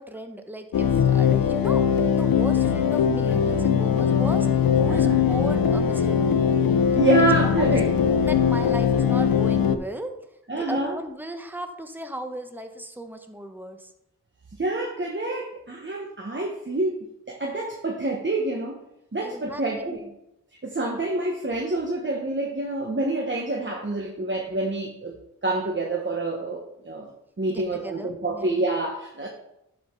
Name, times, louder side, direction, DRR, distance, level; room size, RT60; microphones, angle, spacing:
voice 1, 0.0-4.5 4.7-6.3 7.4-10.2 10.5-13.9 19.2-20.1 27.5-28.5, right 1 dB, 5° right, 6 dB, 1.1 m, -36 dB
sound 1, 0.7-9.8, left 7 dB, 85° left, 0.6 m, -21 dB
voice 2, 6.9-7.9 10.5-11.0 14.6-16.9 17.3-18.8 19.1-20.0 20.6-25.2 25.4-27.1 27.4-29.3, right 2 dB, 35° right, -1 dB, 1.3 m, -27 dB
11.0 x 5.1 x 3.9 m, 0.84 s
cardioid pair, 45°, 34 cm